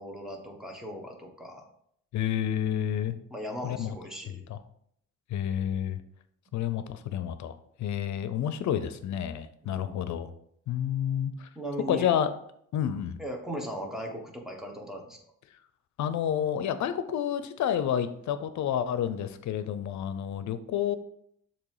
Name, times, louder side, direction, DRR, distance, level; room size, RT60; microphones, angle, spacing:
voice 1, 0.0-1.6 3.3-4.4 6.5-6.6 9.6-10.0 11.5-12.4 13.2-15.2, equal, ahead, 1 dB, 1.4 m, -38 dB
voice 2, 2.1-3.1 3.6-3.9 4.5-4.6 5.3-6.0 6.5-10.3 10.7-11.5 11.9-12.3 12.7-13.2 16.0-21.0, left 9 dB, 70° left, 11 dB, 0.7 m, -29 dB
6.9 x 3.0 x 4.8 m, 0.69 s
cardioid pair, 90°, 30 cm